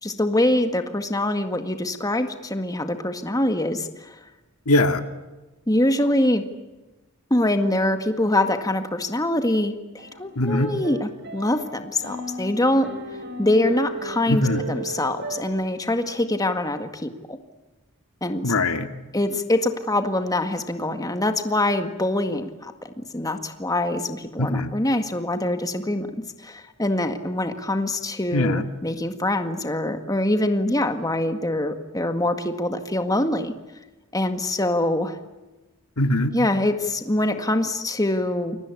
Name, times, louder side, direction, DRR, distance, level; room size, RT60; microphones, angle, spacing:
voice 1, 0.0-4.2 5.7-6.4 7.3-12.9 13.4-14.4 14.7-17.4 18.2-18.5 19.1-22.7 23.0-26.1 26.4-33.5 34.1-35.2 36.3-38.6, left 1 dB, 15° left, 7 dB, 1.9 m, -24 dB
voice 2, 4.7-5.0 10.4-10.7 14.3-14.6 18.4-18.9 24.4-24.7 28.3-28.6 36.0-36.3, left 2 dB, 85° left, 8 dB, 2.2 m, -21 dB
sound 1, 10.0-15.4, right 1 dB, 50° right, 5.0 m, -35 dB
29.0 x 23.5 x 8.5 m, 1.1 s
head